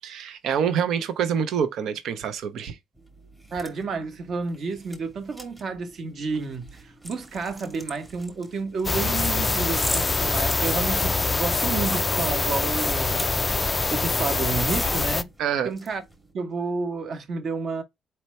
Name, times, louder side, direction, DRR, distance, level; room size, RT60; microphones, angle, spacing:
voice 1, 0.0-2.8 15.4-15.7, right 7 dB, 70° right, 0.7 m, -26 dB
sound 1, 2.9-16.3, right 1 dB, 10° right, 1.1 m, -42 dB
voice 2, 3.5-13.3 13.9-15.3 15.6-16.0 16.3-17.8, right 4 dB, 45° right, 1.1 m, -30 dB
sound 2, 8.8-15.2, left 3 dB, 20° left, 0.3 m, -24 dB
4.5 x 2.8 x 3.2 m
cardioid pair, 145°, 0 cm